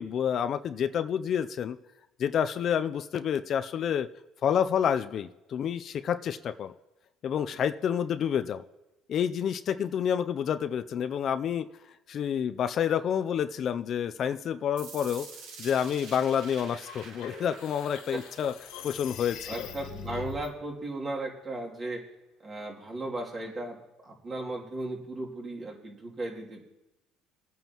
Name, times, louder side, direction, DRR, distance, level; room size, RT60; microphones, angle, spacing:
voice 1, 0.0-1.8 2.2-4.1 4.4-6.7 7.2-8.6 9.1-11.7 12.1-15.3 15.6-18.5 18.8-19.4, left 8 dB, 50° left, 10 dB, 0.5 m, -28 dB
sound 1, 14.8-20.8, right 4 dB, 80° right, 2.2 m, -48 dB
sound 2, 16.7-20.5, left 6 dB, 75° left, 1.1 m, -42 dB
voice 2, 19.4-22.0 22.4-23.8 24.0-26.7, right 2 dB, 35° right, -2 dB, 2.9 m, -36 dB
23.0 x 9.2 x 3.0 m, 1.0 s
supercardioid pair, 100°, 0 cm